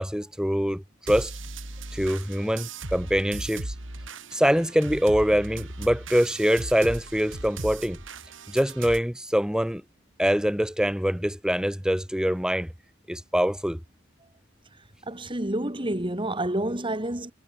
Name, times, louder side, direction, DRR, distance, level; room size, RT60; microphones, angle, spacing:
voice 1, 0.0-1.3 1.9-3.8 4.3-8.0 8.5-9.8 10.2-12.7 13.1-13.8, equal, 5° right, 2.4 m, -24 dB
sound 1, 1.1-9.0, right 2 dB, 70° right, 3.2 m, -38 dB
voice 2, 15.1-17.3, right 1 dB, 25° right, 2.6 m, -29 dB
head